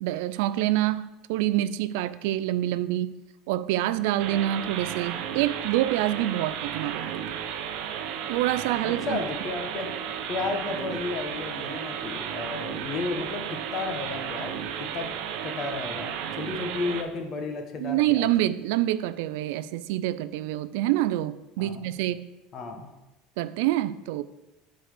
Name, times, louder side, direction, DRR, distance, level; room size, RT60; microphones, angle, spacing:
voice 1, 0.0-3.2 3.5-7.2 8.3-9.2 17.8-22.3 23.4-24.2, right 14 dB, 80° right, 0.4 m, -26 dB
sound 1, 4.2-17.0, right 8 dB, 65° right, 0.8 m, -34 dB
voice 2, 9.0-9.9 10.3-15.1 15.4-18.3 21.6-22.0 22.5-22.9, left 3 dB, 35° left, 1.1 m, -33 dB
7.8 x 4.1 x 6.6 m
cardioid pair, 145°, 0 cm